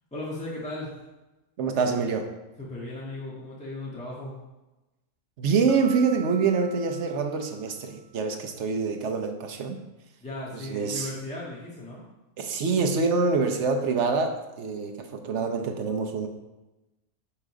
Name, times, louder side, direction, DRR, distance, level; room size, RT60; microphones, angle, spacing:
voice 1, 0.1-0.9 2.6-4.3 10.2-12.0, left 2 dB, 5° left, -6 dB, 1.5 m, -36 dB
voice 2, 1.6-2.3 5.4-9.8 10.5-11.1 12.4-16.3, right 4 dB, 55° right, 5 dB, 1.0 m, -26 dB
Piano, 5.7-8.2, right 8 dB, 80° right, 1.9 m, -46 dB
7.4 x 3.9 x 4.8 m, 1.0 s
omnidirectional pair, 1.6 m